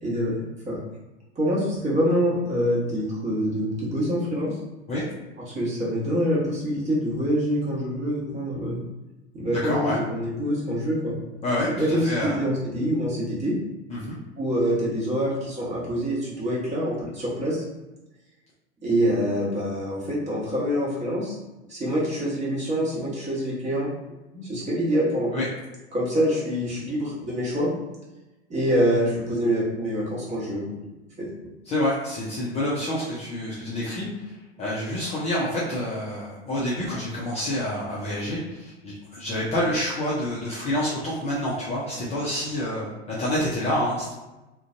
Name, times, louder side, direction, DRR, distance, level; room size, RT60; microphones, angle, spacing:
voice 1, 0.0-0.3 0.7-0.8 1.3-4.5 5.5-8.8 9.3-11.2 11.8-12.1 12.4-13.6 14.4-17.6 18.8-21.4 21.7-23.9 24.3-25.3 25.9-27.7 28.5-30.7 31.2-31.3, equal, 20° right, -6 dB, 1.1 m, -25 dB
voice 2, 9.6-10.0 11.4-12.4 13.9-14.2 25.3-25.5 31.6-44.1, left 1 dB, 20° left, -7 dB, 0.5 m, -28 dB
2.5 x 2.2 x 2.6 m, 1.1 s
figure-of-eight pair, 85°, 34 cm